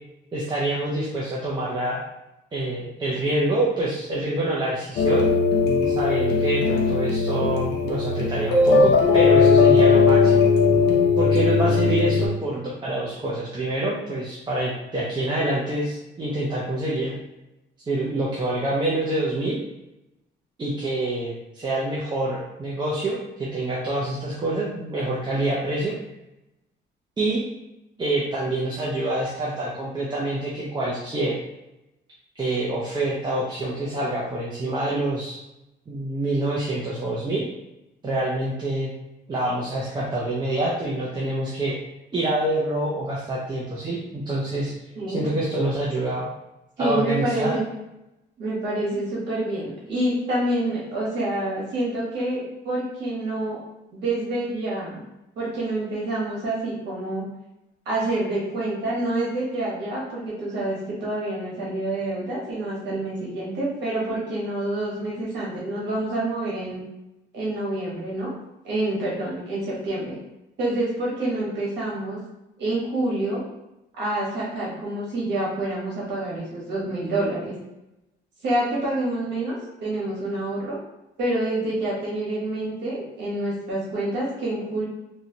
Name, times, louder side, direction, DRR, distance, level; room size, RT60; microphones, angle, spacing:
voice 1, 0.3-2.0 2.5-5.2 5.9-10.5 11.2-17.1 17.8-19.6 20.6-26.0 27.2-27.4 28.0-31.4 32.3-35.4 35.9-37.5 38.0-38.9 39.3-41.8 42.1-44.7 45.1-46.3 46.8-47.5, right 1 dB, 25° right, -5 dB, 0.6 m, -26 dB
Island tune - short loop, 5.0-12.3, left 4 dB, 60° left, 0.7 m, -18 dB
voice 2, 46.8-47.6 48.4-53.6 53.9-55.0 55.4-57.2 57.8-66.8 67.3-68.3 68.6-70.2 70.6-72.2 72.6-73.4 73.9-77.5 78.4-80.8 81.2-84.9, right 1 dB, 65° right, -6 dB, 1.3 m, -27 dB
3.1 x 2.7 x 2.8 m, 0.92 s
cardioid pair, 140°, 19 cm